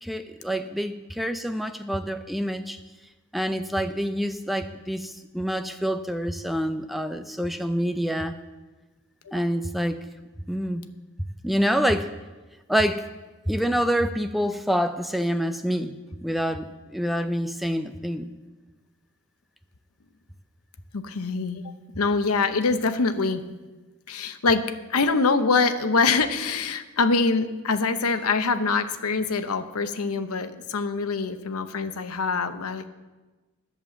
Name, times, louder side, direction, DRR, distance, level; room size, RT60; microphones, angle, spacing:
voice 1, 0.0-2.8 3.3-8.4 9.3-10.1 10.5-10.8 11.4-12.1 12.7-13.1 13.5-18.3, equal, ahead, 8 dB, 0.4 m, -27 dB
voice 2, 20.9-21.6 22.0-23.4 24.1-32.9, left 4 dB, 85° left, 10 dB, 0.8 m, -24 dB
11.0 x 7.3 x 7.6 m, 1.2 s
head